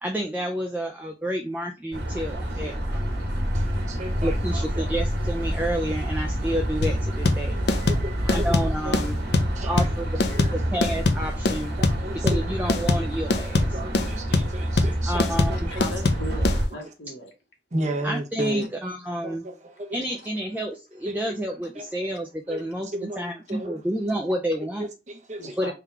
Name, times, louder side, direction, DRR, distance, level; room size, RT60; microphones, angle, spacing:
voice 1, 0.0-3.0 4.2-7.6 8.2-9.2 9.7-10.2 10.5-11.7 12.2-13.8 15.1-15.7 18.0-19.4 19.9-24.9 25.6-25.7, equal, 10° right, 0.3 m, -30 dB
sound 1, 1.9-16.7, equal, 75° right, 1.3 m, -28 dB
voice 2, 2.3-3.1 3.5-4.9 7.6-8.5 8.8-9.9 10.3-10.5 11.8-12.4 12.6-12.7 13.7-15.2 15.5-15.8 16.7-16.8 17.7-18.7 19.2-20.0 21.0-21.4 21.8-21.9 22.5-22.6 22.9-23.8 24.8-25.6, right 1 dB, 40° right, 0.8 m, -34 dB
sound 2, 6.8-16.6, left 2 dB, 70° left, 0.5 m, -23 dB
voice 3, 15.7-17.3 25.4-25.7, left 1 dB, 85° left, 1.2 m, -37 dB
3.6 x 2.3 x 4.2 m
head